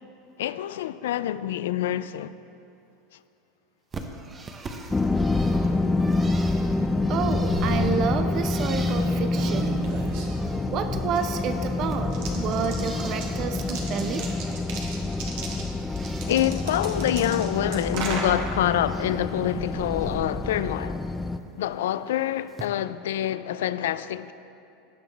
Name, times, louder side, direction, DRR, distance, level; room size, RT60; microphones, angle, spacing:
voice 1, 0.4-2.3 16.3-21.0 21.5-24.3, left 12 dB, 80° left, 0.3 m, -26 dB
Bird, 3.9-10.7 11.0-13.5 13.8-14.7 15.0-16.3 16.7-17.9 18.2-19.3 19.7-20.1 21.4-21.5 22.5-22.7, right 3 dB, 25° right, 0.9 m, -44 dB
sound 1, 4.9-21.4, left 2 dB, 15° left, 0.4 m, -27 dB
voice 2, 7.1-9.8 10.7-14.3, right 6 dB, 50° right, 0.7 m, -29 dB
sound 2, 7.4-21.1, right 3 dB, 65° right, 1.6 m, -38 dB
17.0 x 6.3 x 3.4 m
supercardioid pair, 105°, 0 cm